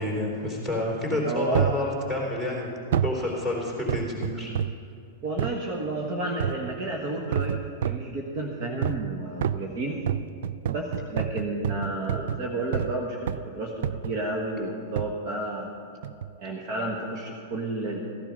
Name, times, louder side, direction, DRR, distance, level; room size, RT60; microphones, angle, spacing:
voice 1, 0.0-2.7 3.0-4.5, left 1 dB, 15° right, -2 dB, 3.6 m, -29 dB
voice 2, 1.3-1.7 5.2-10.0 10.7-15.7 16.4-18.0, right 2 dB, 45° right, -1 dB, 1.5 m, -31 dB
sound 1, 1.5-1.9 2.9-3.2 3.9-4.8 5.4-5.6 6.4-6.7 7.3-8.1 8.8-9.1 9.4-13.0 13.3-13.5 13.8-14.2 15.0-15.2 16.0-16.3 16.9-17.0, right 9 dB, 70° right, 0.3 m, -29 dB
15.0 x 11.0 x 5.3 m, 2.6 s
supercardioid pair, 140°, 0 cm